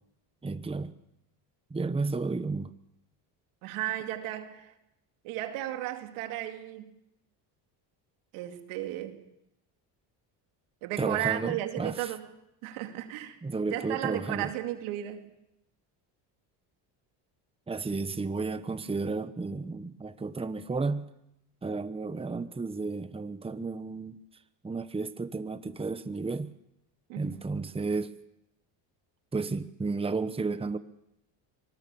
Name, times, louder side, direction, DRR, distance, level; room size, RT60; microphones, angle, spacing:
voice 1, 0.4-0.9 1.7-2.7 11.0-12.1 13.4-14.5 17.7-21.1 21.6-24.2 24.6-26.5 27.2-28.1 29.3-30.8, right 3 dB, 10° right, 1.0 m, -32 dB
voice 2, 3.6-4.7 5.2-6.9 8.3-9.2 10.8-12.2 12.6-13.4 13.7-15.3 27.1-27.4, right 13 dB, 90° right, 2.5 m, -34 dB
24.0 x 20.0 x 7.0 m
cardioid pair, 100°, 47 cm